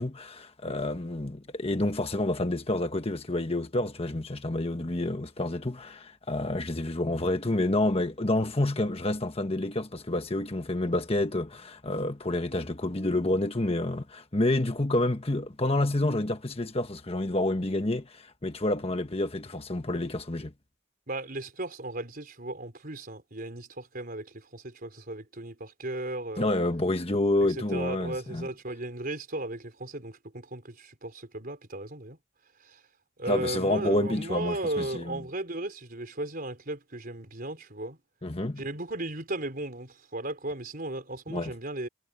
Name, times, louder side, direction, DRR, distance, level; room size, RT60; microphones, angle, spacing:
voice 1, 0.0-20.5 26.4-28.5 33.3-35.2 38.2-38.6 41.3-41.5, left 1 dB, 30° left, 1.3 m, -28 dB
voice 2, 21.1-26.5 27.7-32.2 32.6-32.8 33.2-38.0 38.6-41.9, right 2 dB, 45° right, 4.4 m, -36 dB
head